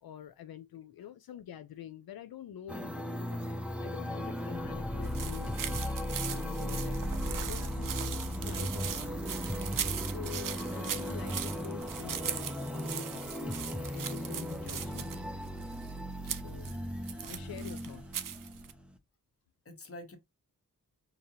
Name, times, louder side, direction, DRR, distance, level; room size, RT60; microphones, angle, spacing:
voice 1, 0.0-5.6 6.2-8.0 8.4-9.3 10.0-15.1 16.3-16.7 17.2-18.0, left 10 dB, 85° left, 0.5 m, -47 dB
sound 1, 2.7-19.0, equal, 5° right, 0.5 m, -36 dB
sound 2, 5.0-18.7, right 9 dB, 65° right, 0.5 m, -40 dB
voice 2, 9.6-10.1 16.2-16.4 17.2-17.4 19.6-20.2, left 1 dB, 40° left, 1.1 m, -51 dB
5.0 x 2.9 x 2.7 m
wide cardioid pair, 130°, 35 cm